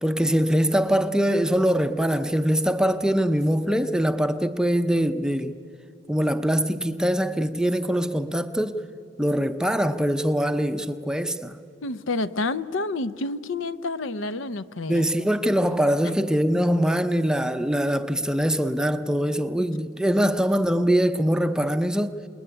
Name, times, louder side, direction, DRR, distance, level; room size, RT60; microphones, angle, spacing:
voice 1, 0.0-5.5 6.1-8.8 9.2-11.6 14.9-22.1, equal, 5° right, 0.6 m, -23 dB
voice 2, 11.8-15.1, left 2 dB, 70° left, 0.7 m, -29 dB
27.5 x 20.5 x 9.8 m
head